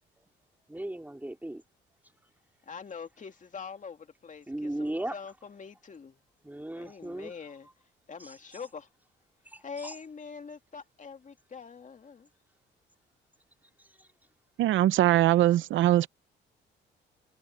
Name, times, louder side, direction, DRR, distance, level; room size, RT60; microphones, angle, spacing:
voice 1, 0.7-1.6 4.5-5.1 6.4-7.3 8.2-8.3 9.5-9.9, right 1 dB, 10° right, 4.2 m, -36 dB
voice 2, 2.6-6.2 6.8-7.7 8.1-8.9 9.6-12.3, left 5 dB, 40° left, 2.5 m, -44 dB
voice 3, 14.6-16.1, right 14 dB, 75° right, 0.7 m, -22 dB
cardioid pair, 90°, 20 cm